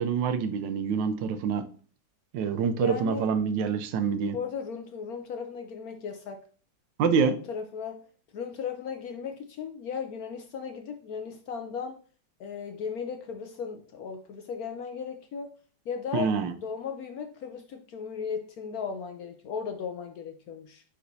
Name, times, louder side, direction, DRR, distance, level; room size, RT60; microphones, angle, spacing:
voice 1, 0.0-1.6 2.3-4.4 7.0-7.4 16.1-16.5, right 6 dB, 85° right, 8 dB, 1.4 m, -26 dB
voice 2, 2.8-3.3 4.3-6.4 7.3-8.0 8.3-12.0 12.4-15.5 15.9-16.3 16.6-20.8, left 6 dB, 70° left, 6 dB, 1.0 m, -36 dB
10.0 x 3.9 x 2.7 m, 0.42 s
omnidirectional pair, 1.9 m